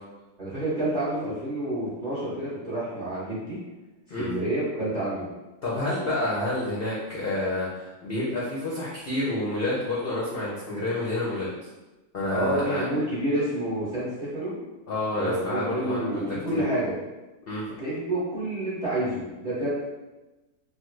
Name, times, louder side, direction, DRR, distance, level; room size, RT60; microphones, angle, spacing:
voice 1, 0.4-3.6 4.1-5.2 12.3-14.5 15.1-16.9 17.8-19.8, right 1 dB, 35° right, -10 dB, 0.7 m, -29 dB
voice 2, 5.6-11.5 12.1-12.8 14.9-16.6 17.5-17.7, left 2 dB, 65° left, -6 dB, 0.5 m, -29 dB
3.2 x 2.1 x 3.0 m, 1.1 s
omnidirectional pair, 1.7 m